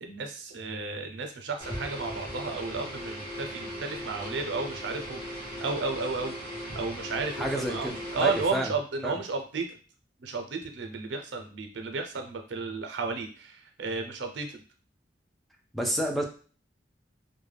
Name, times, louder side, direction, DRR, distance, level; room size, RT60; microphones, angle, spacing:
voice 1, 0.0-6.4 6.7-9.7 10.2-14.6, right 4 dB, 80° right, 5 dB, 0.5 m, -33 dB
sound 1, 1.6-8.7, equal, 30° left, 0.8 m, -38 dB
voice 2, 7.4-8.7 9.0-9.2 15.7-16.2, right 1 dB, ahead, 2 dB, 0.3 m, -30 dB
2.1 x 2.1 x 3.3 m, 0.39 s
head